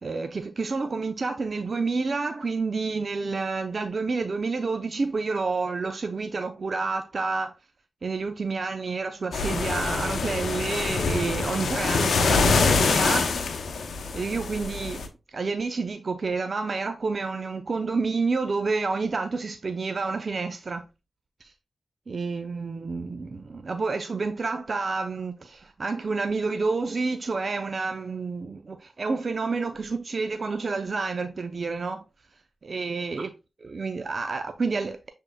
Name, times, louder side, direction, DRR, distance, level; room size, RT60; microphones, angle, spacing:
voice 1, 0.0-7.5 8.0-13.3 14.1-20.8 21.4-21.5 22.1-32.1 32.6-33.3 33.6-35.0, right 4 dB, 60° right, 0.5 m, -29 dB
sound 1, 9.3-15.1, left 4 dB, 85° left, 0.6 m, -25 dB
6.5 x 3.6 x 2.2 m
cardioid pair, 45°, 0 cm